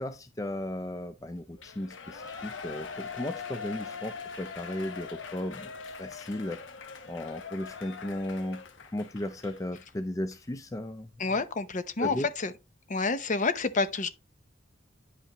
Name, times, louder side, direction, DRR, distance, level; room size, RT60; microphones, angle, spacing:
voice 1, 0.0-5.7 6.0-6.6 7.1-8.6 8.9-11.4 12.0-12.3, left 1 dB, 20° left, 0.4 m, -35 dB
Shout / Cheering, 1.6-9.9 10.3-10.4, left 5 dB, 75° left, 1.0 m, -42 dB
voice 2, 11.2-12.5 12.9-14.1, left 4 dB, 40° left, 0.7 m, -28 dB
9.8 x 5.4 x 2.9 m
head